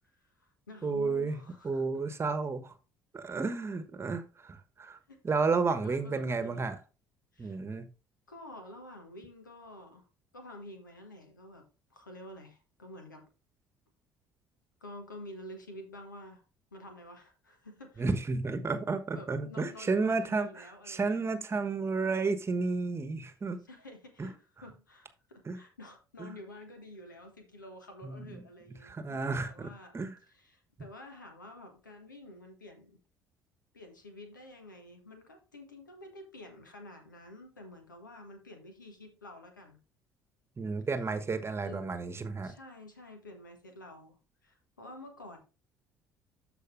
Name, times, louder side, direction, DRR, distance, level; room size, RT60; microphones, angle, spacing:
voice 1, 0.1-1.8 3.3-3.4 5.1-5.2 5.7-6.8 7.3-7.6 8.3-10.1 10.3-13.3 14.8-16.4 16.7-18.1 19.2-21.2 23.7-30.0 30.3-33.0 33.7-39.8 41.6-42.0 42.4-45.4, left 1 dB, 85° left, 1.3 m, -49 dB
voice 2, 0.8-1.4 1.6-2.7 3.1-5.0 5.2-6.8 7.4-7.9 18.0-23.6 24.2-24.3 25.4-25.6 26.2-26.3 28.0-28.4 28.8-30.2 40.6-42.5, right 4 dB, 25° right, 1.2 m, -32 dB
13.5 x 4.9 x 2.5 m
figure-of-eight pair, 55°, 10 cm